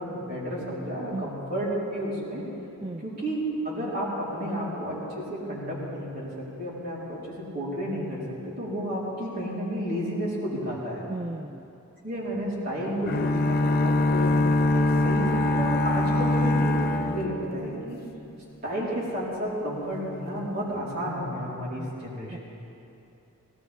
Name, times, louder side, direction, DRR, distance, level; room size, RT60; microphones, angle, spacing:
voice 1, 0.0-2.5 3.0-11.0 12.0-14.4 14.7-18.0 18.6-22.4, equal, 45° right, -7 dB, 4.0 m, -31 dB
voice 2, 11.1-11.7 21.8-21.9 22.3-22.4, right 2 dB, 20° right, 5 dB, 0.3 m, -35 dB
sound 1, 13.1-18.0, left 2 dB, 45° left, 0.7 m, -23 dB
19.5 x 17.0 x 3.6 m, 2.8 s
head